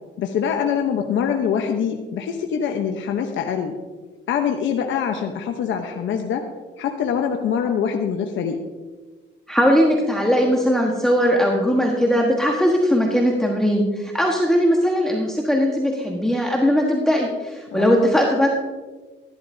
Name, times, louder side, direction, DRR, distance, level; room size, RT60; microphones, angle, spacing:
voice 1, 0.2-3.7 4.3-6.5 6.8-8.6 17.7-18.1, left 7 dB, 75° left, 3 dB, 1.0 m, -24 dB
voice 2, 9.5-18.5, equal, 5° left, -1 dB, 1.4 m, -19 dB
13.0 x 12.0 x 2.8 m, 1.3 s
cardioid pair, 90°, 20 cm